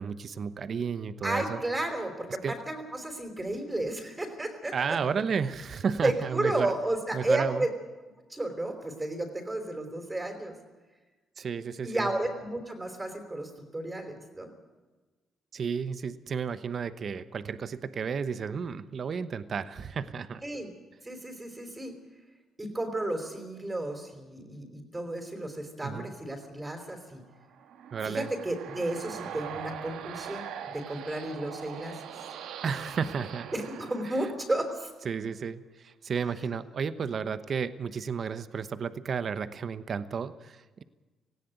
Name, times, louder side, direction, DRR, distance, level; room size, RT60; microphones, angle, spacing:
voice 1, 0.0-1.6 2.4-2.6 4.7-6.7 7.1-7.7 11.4-12.1 15.5-20.4 25.8-26.1 27.9-28.3 32.6-33.5 34.0-34.3 35.0-40.8, right 6 dB, 50° right, 13 dB, 1.0 m, -32 dB
voice 2, 1.2-4.7 6.0-7.7 8.3-10.5 11.8-14.5 20.4-20.7 21.0-21.9 22.6-27.2 28.0-30.5 30.7-32.0 33.5-34.9, right 1 dB, 20° right, 4 dB, 4.0 m, -32 dB
sound 1, 27.3-34.9, right 8 dB, 85° right, 1.6 m, -42 dB
18.5 x 16.0 x 9.3 m, 1.2 s
cardioid pair, 90°, 0 cm